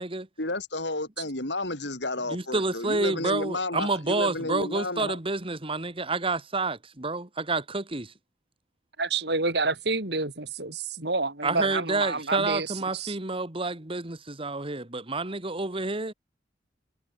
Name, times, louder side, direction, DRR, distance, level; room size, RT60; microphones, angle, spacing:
voice 1, 0.4-5.2, left 2 dB, 75° left, 7.5 m, -32 dB
voice 2, 2.3-8.1 11.4-16.1, right 3 dB, 30° right, 2.1 m, -29 dB
voice 3, 9.0-12.7 12.9-13.1, right 3 dB, 65° right, 7.8 m, -28 dB
head